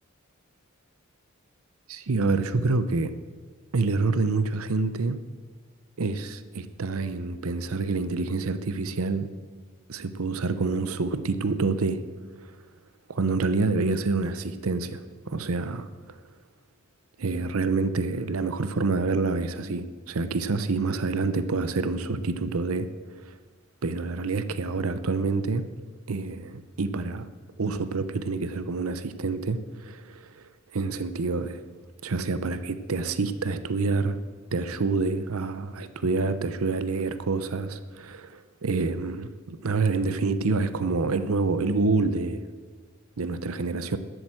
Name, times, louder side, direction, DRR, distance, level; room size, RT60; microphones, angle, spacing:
voice 1, 1.9-3.1 3.7-5.2 6.0-9.3 9.9-12.0 12.4-12.5 13.1-15.9 17.2-22.9 23.2-23.4 23.8-25.6 26.1-27.3 27.6-31.6 32.0-34.2 34.5-42.4 43.2-44.0, right 3 dB, 85° right, 0.7 m, -27 dB
11.5 x 7.9 x 7.7 m
head